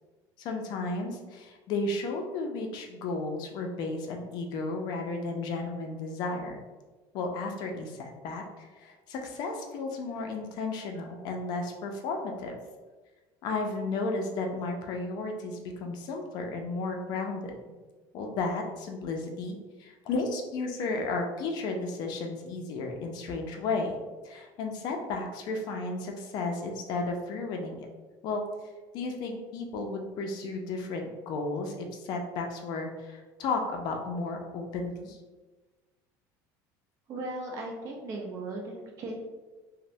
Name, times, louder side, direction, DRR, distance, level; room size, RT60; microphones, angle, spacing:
voice 1, 0.4-6.6 7.1-12.6 13.4-17.5 18.1-23.9 24.2-27.8 28.2-28.4 28.9-35.2, left 3 dB, 55° left, 3 dB, 0.4 m, -33 dB
voice 2, 37.1-39.1, right 2 dB, 40° right, 0 dB, 0.6 m, -37 dB
3.0 x 2.1 x 2.6 m, 1.3 s
cardioid pair, 155°, 9 cm